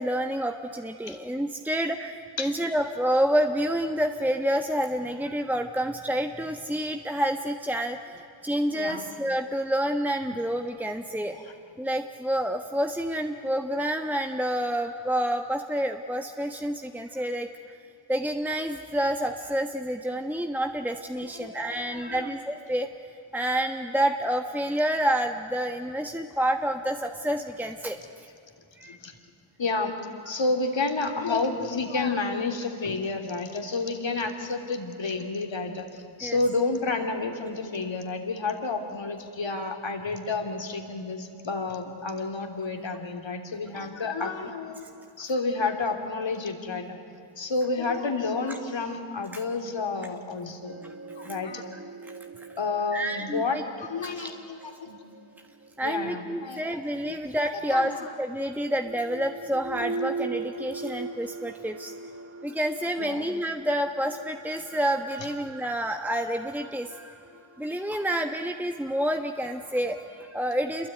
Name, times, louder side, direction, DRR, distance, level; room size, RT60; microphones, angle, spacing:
voice 1, 0.0-11.4 11.8-17.8 18.1-22.9 23.3-28.0 28.8-29.0 36.2-36.4 44.8-44.9 51.2-51.3 51.7-52.5 52.9-53.6 54.0-54.3 55.8-57.9 58.2-61.9 62.4-67.2 67.6-70.9, equal, 5° right, 4 dB, 1.4 m, -28 dB
voice 2, 8.7-9.0 11.3-11.4 21.2-22.3 28.8-29.1 29.6-29.9 30.2-35.9 36.2-44.8 45.2-47.0 47.4-50.7 51.2-51.6 52.6-55.0 55.8-57.2 57.7-58.1 63.0-63.3, left 3 dB, 60° left, 4 dB, 3.2 m, -30 dB
sound 1, 50.7-56.7 57.8-70.3, right 3 dB, 25° right, 1.2 m, -41 dB
27.0 x 23.0 x 9.5 m, 2.5 s
cardioid pair, 55°, 50 cm